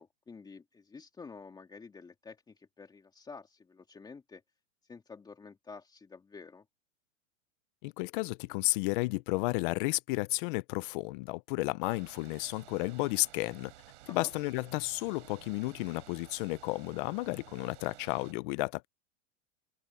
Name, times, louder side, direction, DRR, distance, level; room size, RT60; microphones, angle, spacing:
voice 1, 0.0-4.4 4.9-6.6 14.1-14.3, left 4 dB, 10° left, 2.5 m, -50 dB
voice 2, 7.8-13.7 14.1-18.9, left 23 dB, 45° left, 0.7 m, -32 dB
sound 1, 11.8-18.3, right 15 dB, 75° right, 6.1 m, -54 dB
open air
supercardioid pair, 150°, 36 cm